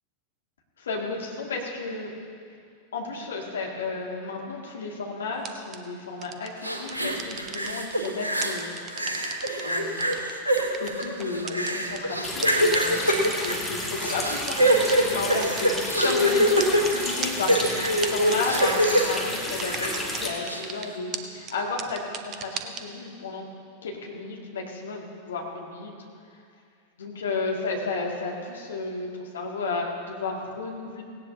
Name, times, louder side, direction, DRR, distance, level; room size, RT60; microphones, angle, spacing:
voice 1, 0.8-2.1 2.9-8.7 9.6-10.1 10.8-23.5 23.8-25.9 27.0-31.0, left 3 dB, 65° left, -1 dB, 2.1 m, -33 dB
sound 1, 5.4-5.8 6.2-6.5 6.9-8.1 8.4-9.6 10.0-12.0 12.4-12.5 12.7-12.8 13.2-13.7 14.1-14.2 14.5-14.6 14.9-15.0 15.2-16.1 16.6-20.2 20.5-20.9 21.1-21.2 21.5-21.6 21.8-22.8, right 8 dB, 30° right, 0.9 m, -34 dB
sound 2, 6.6-8.7 8.9-20.1 20.4-20.6, equal, 85° right, 1.3 m, -25 dB
Water tap faucet, 12.2-20.3, left 1 dB, 5° left, 2.1 m, -32 dB
17.5 x 17.5 x 2.7 m, 2.3 s
figure-of-eight pair, 90°, 0 cm